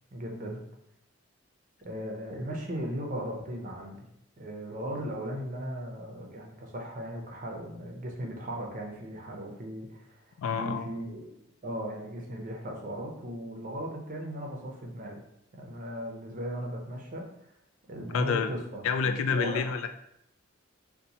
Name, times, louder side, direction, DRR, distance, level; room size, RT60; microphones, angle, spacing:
voice 1, 0.1-0.6 1.8-4.0 4.4-11.4 11.6-15.2 15.5-17.3 17.9-18.8 19.3-19.7, equal, 40° right, 1 dB, 0.5 m, -37 dB
voice 2, 10.4-10.9 18.1-18.5 18.8-20.0, left 5 dB, 80° left, 9 dB, 0.3 m, -28 dB
4.0 x 2.1 x 2.7 m, 0.79 s
head